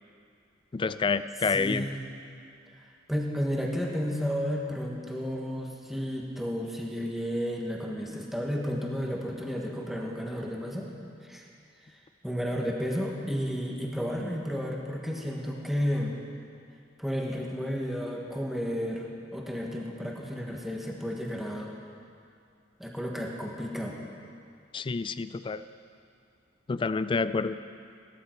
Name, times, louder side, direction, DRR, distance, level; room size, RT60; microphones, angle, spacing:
voice 1, 0.7-1.9 24.7-25.6 26.7-27.6, left 4 dB, 25° left, 13 dB, 0.3 m, -28 dB
voice 2, 1.5-2.0 3.1-10.9 11.3-11.5 12.2-16.2 17.0-21.7 22.8-24.0, equal, ahead, -1 dB, 1.3 m, -32 dB
16.0 x 12.5 x 4.5 m, 2.4 s
head